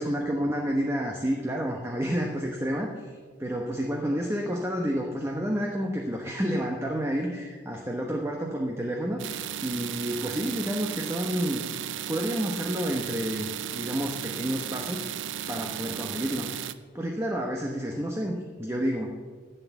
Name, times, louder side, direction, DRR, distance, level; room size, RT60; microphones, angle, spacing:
voice 1, 0.0-3.1 3.4-11.6 12.1-15.2 15.5-16.5 16.9-19.1, equal, 15° right, 0 dB, 0.9 m, -30 dB
sound 1, 9.2-16.7, right 10 dB, 85° right, 0.5 m, -35 dB
11.5 x 8.2 x 7.2 m, 1.5 s
head